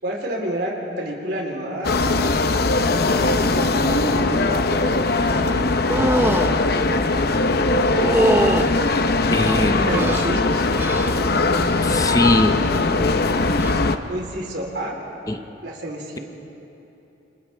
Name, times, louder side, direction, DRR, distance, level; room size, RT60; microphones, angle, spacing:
voice 1, 0.0-1.9 3.5-4.8 5.1-5.6 9.6-10.6 14.1-15.0 15.6-16.2, right 1 dB, 70° right, -1 dB, 3.7 m, -30 dB
sound 1, 1.8-14.0, left 3 dB, 60° left, 0.8 m, -20 dB
sound 2, 5.9-6.5 7.9-8.7 9.5-10.3 10.8-11.2 11.6-12.0 13.5-13.7, right 1 dB, 10° right, 0.7 m, -22 dB
voice 2, 9.3-10.2 11.8-12.5 15.3-15.4, left 1 dB, 20° left, 7 dB, 0.8 m, -21 dB
29.0 x 26.5 x 3.5 m, 3.0 s
head